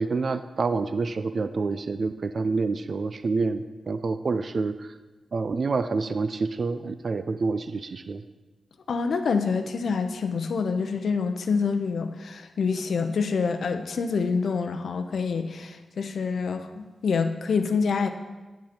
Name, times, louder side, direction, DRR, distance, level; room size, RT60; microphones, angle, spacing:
voice 1, 0.0-4.9 5.3-8.2, right 4 dB, 55° right, 11 dB, 0.4 m, -27 dB
voice 2, 8.9-18.1, left 5 dB, 75° left, 8 dB, 0.7 m, -26 dB
9.2 x 7.7 x 4.4 m, 1.2 s
cardioid pair, 85°, 0 cm